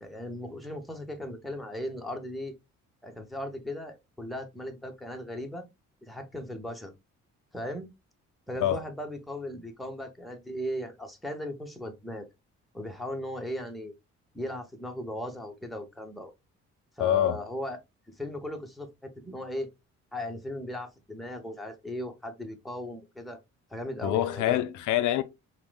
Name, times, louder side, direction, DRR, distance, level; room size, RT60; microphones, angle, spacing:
voice 1, 0.0-2.5 3.0-5.7 6.0-6.9 7.5-7.9 8.5-12.3 12.7-13.9 14.3-16.3 17.0-17.8 18.2-19.7 20.1-23.4 23.7-24.6, left 1 dB, ahead, 0.7 m, -37 dB
voice 2, 17.0-17.4 24.0-25.2, left 12 dB, 80° left, 0.5 m, -25 dB
4.7 x 2.1 x 2.2 m
cardioid pair, 90°, 30 cm